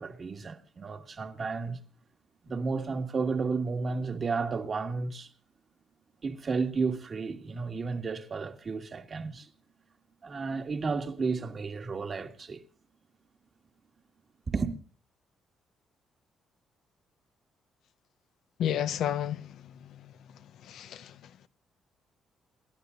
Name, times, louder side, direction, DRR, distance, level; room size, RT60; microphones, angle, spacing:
voice 1, 0.0-1.8 2.4-5.3 6.2-9.5 10.2-12.6 14.5-14.7, right 4 dB, 40° right, 1.8 m, -32 dB
voice 2, 18.6-19.5 20.6-21.1, left 10 dB, 80° left, 0.8 m, -31 dB
29.0 x 12.0 x 2.6 m
cardioid pair, 90°, 0 cm